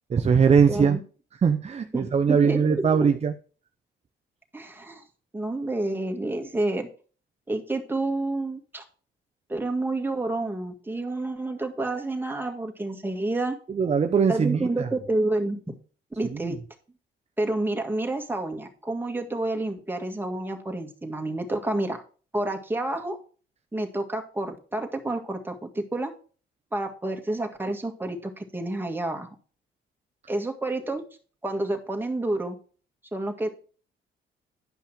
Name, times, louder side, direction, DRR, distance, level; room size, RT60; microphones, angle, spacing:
voice 1, 0.1-1.0 1.4-3.3 13.7-14.9 16.3-16.6, right 6 dB, 35° right, 7 dB, 0.7 m, -21 dB
voice 2, 0.7-1.0 1.9-2.8 4.5-5.0 5.3-6.9 7.5-8.8 9.5-13.6 14.3-15.7 16.2-16.6 17.4-22.0 22.3-23.2 23.7-26.1 26.7-29.3 30.3-31.1 31.4-32.6 33.1-33.5, right 2 dB, 10° right, 3 dB, 1.8 m, -29 dB
10.5 x 5.6 x 5.0 m, 0.39 s
cardioid pair, 90°, 20 cm